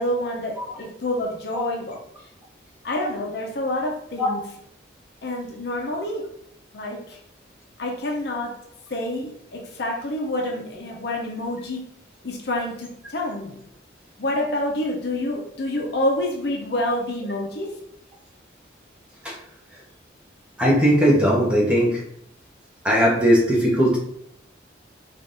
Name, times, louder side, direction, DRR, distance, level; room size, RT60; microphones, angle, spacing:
voice 1, 0.0-2.0 2.8-4.4 5.2-6.3 6.7-7.2 7.8-8.6 8.9-11.8 12.2-13.6 14.2-17.7, left 1 dB, 60° left, 0 dB, 0.7 m, -27 dB
voice 2, 20.6-22.0 22.8-24.0, equal, 5° right, -4 dB, 0.9 m, -18 dB
3.9 x 2.6 x 3.6 m, 0.71 s
head